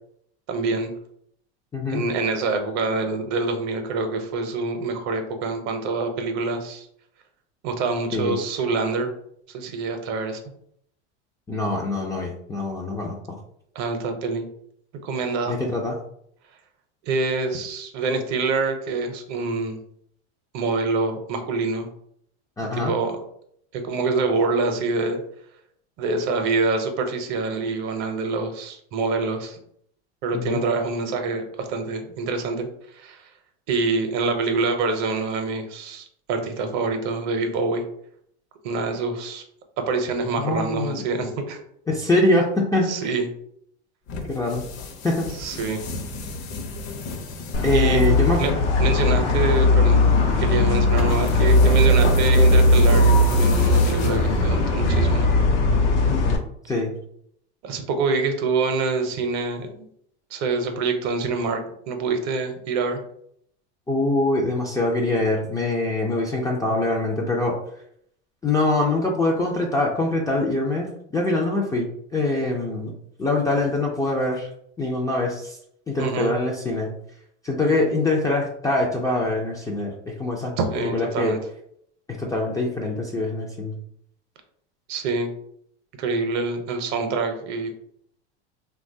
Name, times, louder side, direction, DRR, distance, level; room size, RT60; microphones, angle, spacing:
voice 1, 0.5-0.9 1.9-6.9 7.6-9.1 9.5-10.4 13.7-14.5 15.0-15.6 17.0-19.8 20.5-21.9 22.7-23.2 23.7-25.2 26.0-29.6 30.2-32.7 32.9-33.2 33.7-37.8 38.6-39.4 39.8-41.6 42.9-43.3 45.4-45.8 47.7-48.0 48.4-48.5 48.8-50.0 50.4-55.3 57.6-59.9 60.3-61.6 61.9-63.0 76.0-76.4 80.6-81.4 84.9-85.3 86.0-87.7, right 3 dB, 50° right, 6 dB, 0.7 m, -25 dB
voice 2, 1.7-2.0 8.1-8.4 11.5-13.2 15.5-16.0 22.6-22.9 30.3-30.6 40.4-41.0 41.9-43.1 44.3-44.7 45.0-45.3 47.6-48.4 56.1-56.3 56.7-56.9 63.9-67.5 68.4-72.9 73.2-74.5 74.8-75.6 75.9-76.9 77.4-81.3 82.2-83.7, left 2 dB, 10° left, -2 dB, 0.3 m, -24 dB
sound 1, 44.1-54.7, left 3 dB, 50° left, 0.7 m, -32 dB
sound 2, 47.5-56.4, left 2 dB, 90° left, 0.6 m, -18 dB
2.9 x 2.3 x 2.6 m, 0.69 s
hypercardioid pair, 100°, 34 cm